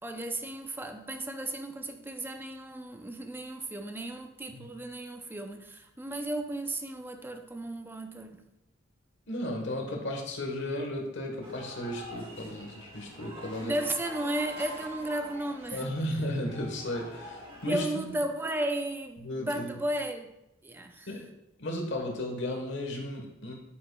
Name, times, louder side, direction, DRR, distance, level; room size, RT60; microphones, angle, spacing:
voice 1, 0.0-8.5 13.6-15.9 17.6-20.3 20.6-21.2, right 1 dB, 10° right, 0.5 m, -34 dB
voice 2, 9.3-13.7 15.7-18.1 19.2-19.7 21.1-21.3 21.6-23.5, left 1 dB, 65° left, 1.3 m, -34 dB
sound 1, 11.4-17.8, right 1 dB, 30° right, 1.9 m, -45 dB
8.5 x 7.7 x 2.3 m
head